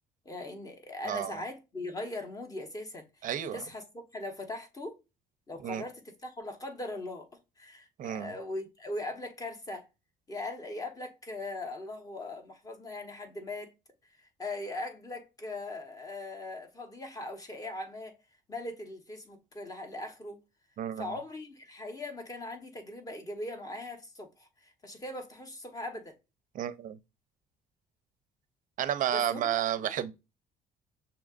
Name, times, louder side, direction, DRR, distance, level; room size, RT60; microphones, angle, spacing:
voice 1, 0.2-5.0 5.5-7.3 7.6-9.9 10.3-13.7 14.2-18.1 18.5-20.4 21.0-26.1 29.1-29.6, left 2 dB, 20° left, 1.1 m, -40 dB
voice 2, 3.2-3.6 5.6-5.8 8.0-8.3 20.8-21.1 26.5-27.0 28.8-30.1, right 10 dB, 50° right, 0.5 m, -31 dB
6.1 x 2.8 x 2.5 m
cardioid pair, 110°, 17 cm